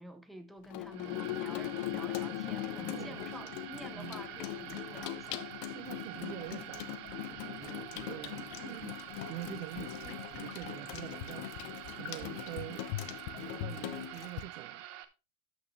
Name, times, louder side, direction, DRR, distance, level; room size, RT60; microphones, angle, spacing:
voice 1, 0.0-5.4, right 1 dB, ahead, 0.7 m, -49 dB
Water tap faucet / Sink (filling or washing), 0.6-14.4, left 14 dB, 40° left, 0.7 m, -40 dB
sound 1, 0.9-15.0, right 13 dB, 35° right, 0.9 m, -46 dB
voice 2, 2.9-3.5 3.9-4.2 4.6-4.8 5.6-9.0 9.3-11.5 11.9-12.9 13.3-14.9, right 16 dB, 60° right, 0.7 m, -46 dB
12.5 x 6.2 x 3.2 m
supercardioid pair, 145°, 45 cm